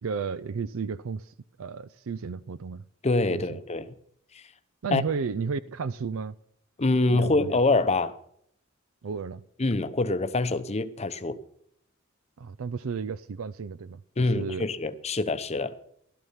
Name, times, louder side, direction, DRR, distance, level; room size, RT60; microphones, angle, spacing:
voice 1, 0.0-2.8 3.3-3.6 4.8-6.4 7.1-7.6 9.0-9.4 12.4-14.0 14.3-14.7, right 5 dB, 80° right, 0.5 m, -33 dB
voice 2, 3.0-3.9 4.3-4.4 4.9-5.0 6.8-8.2 9.6-11.4 14.2-15.7, left 2 dB, 30° left, 0.7 m, -25 dB
15.5 x 12.5 x 5.7 m
head